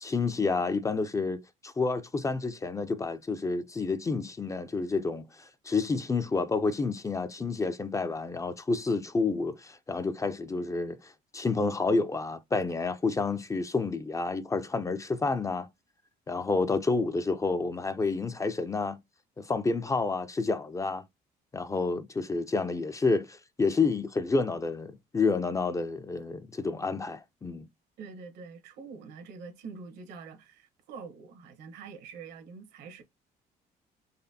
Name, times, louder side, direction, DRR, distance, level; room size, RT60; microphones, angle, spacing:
voice 1, 0.0-15.7 16.3-19.0 19.4-21.0 21.5-27.7, left 3 dB, 20° left, 0.4 m, -29 dB
voice 2, 28.0-33.0, right 5 dB, 85° right, 1.1 m, -45 dB
4.0 x 3.1 x 2.7 m
cardioid pair, 110°, 17 cm